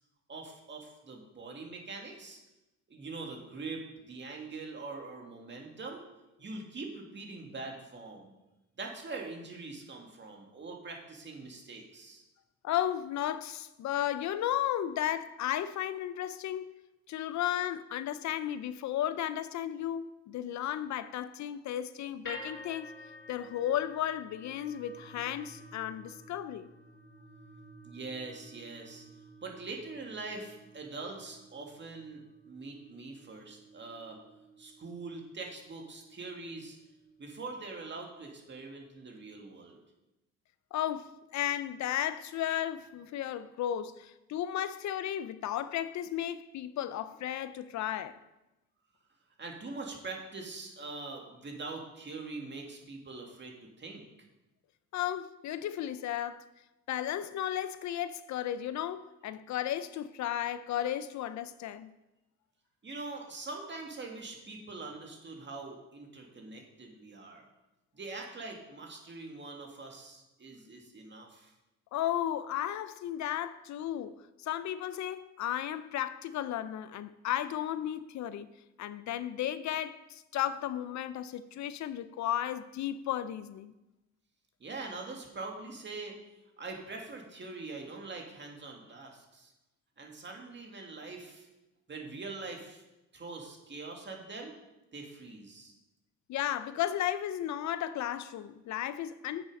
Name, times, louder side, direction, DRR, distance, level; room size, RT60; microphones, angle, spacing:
voice 1, 0.3-2.4 2.9-6.0 6.4-8.3 8.8-12.2 27.8-29.1 29.4-34.2 34.6-36.8 37.2-39.8 49.4-54.1 62.8-67.5 67.9-71.5 84.6-86.2 86.6-89.5 90.0-91.5 91.9-92.8 93.1-94.5 94.9-95.7, right 3 dB, 35° right, 2.0 m, -43 dB
voice 2, 12.6-16.7 17.1-23.0 23.3-26.7 40.7-48.2 54.9-56.4 56.9-61.9 71.9-78.5 78.8-83.7 96.3-99.5, left 11 dB, 70° left, 0.5 m, -34 dB
sound 1, 22.2-38.5, left 1 dB, 40° left, 2.5 m, -52 dB
8.2 x 6.9 x 5.3 m
cardioid pair, 90°, 30 cm